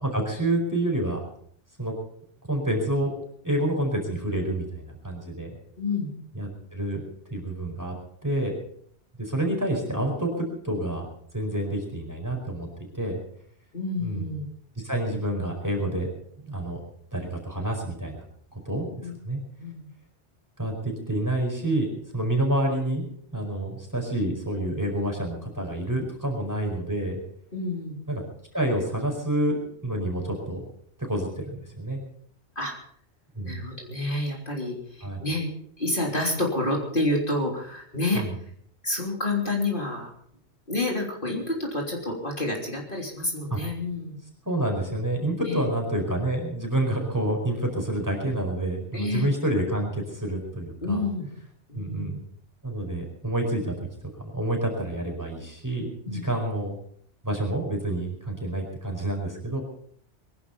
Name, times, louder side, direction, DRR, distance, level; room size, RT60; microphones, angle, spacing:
voice 1, 0.0-1.2 1.8-1.9 2.5-3.1 3.4-5.5 6.3-7.0 7.3-7.9 8.2-8.5 9.2-11.0 11.3-12.7 12.9-13.2 14.0-14.3 14.8-16.1 16.4-16.8 17.1-18.2 18.5-19.4 20.6-23.0 23.3-27.2 28.1-28.2 28.5-30.6 31.1-32.0 33.3-33.6 35.0-35.2 38.1-38.3 43.5-43.6 44.4-51.0 51.7-52.2 52.6-53.9 54.2-56.8 57.2-59.6, right 1 dB, 15° right, 1 dB, 4.8 m, -28 dB
voice 2, 5.8-6.1 13.7-14.5 19.0-19.1 19.6-19.9 27.5-28.0 32.6-32.7 33.4-35.5 35.8-38.2 38.8-40.1 40.7-44.2 45.4-45.7 48.9-49.3 50.8-51.3 51.7-52.2 56.1-56.4, left 2 dB, 45° left, -1 dB, 3.6 m, -29 dB
23.0 x 11.0 x 5.5 m, 0.64 s
omnidirectional pair, 1.2 m